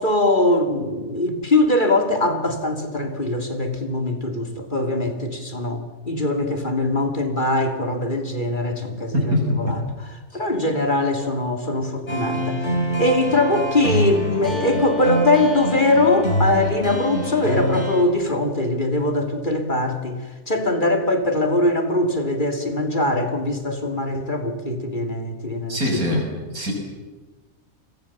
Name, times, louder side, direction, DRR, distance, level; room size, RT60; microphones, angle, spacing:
voice 1, 0.0-9.8 10.3-12.6 13.0-20.2 20.5-26.2, left 2 dB, 35° left, 6 dB, 2.6 m, -22 dB
voice 2, 9.1-9.8 25.7-26.7, left 1 dB, 85° right, 1 dB, 6.9 m, -23 dB
sound 1, 12.1-18.0, left 1 dB, 50° left, 5.2 m, -25 dB
30.0 x 21.5 x 7.2 m, 1.2 s
omnidirectional pair, 1.5 m